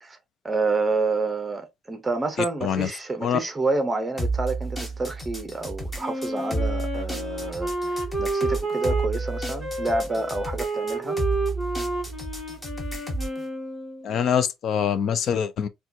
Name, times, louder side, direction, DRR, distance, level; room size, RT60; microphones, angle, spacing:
voice 1, 0.4-11.2, right 3 dB, 15° right, 0.7 m, -28 dB
sound 1, 4.2-13.4, right 2 dB, 10° left, 0.9 m, -31 dB
Wind instrument woodwind instrument, 6.0-14.1, right 2 dB, 25° left, 1.8 m, -31 dB
voice 2, 14.0-15.7, left 8 dB, 50° left, 0.4 m, -24 dB
4.3 x 2.3 x 2.7 m
cardioid pair, 135°, 0 cm